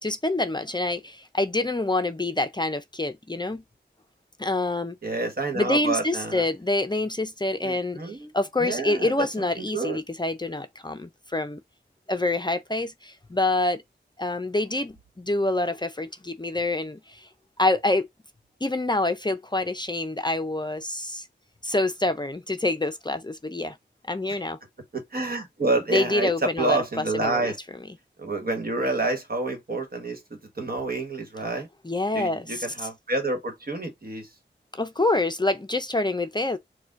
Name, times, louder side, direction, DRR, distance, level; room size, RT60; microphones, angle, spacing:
voice 1, 0.0-3.6 4.4-5.0 5.5-11.6 12.1-13.8 14.2-17.3 17.6-18.1 18.6-21.3 21.6-23.8 24.1-24.6 25.9-27.5 31.8-32.7 34.7-36.6, left 2 dB, 25° left, 0.5 m, -26 dB
voice 2, 5.0-6.4 7.6-8.3 8.6-10.0 24.9-27.6 28.2-31.7 32.1-34.3, right 2 dB, 50° right, 1.4 m, -28 dB
4.1 x 2.2 x 2.5 m
cardioid pair, 40°, 19 cm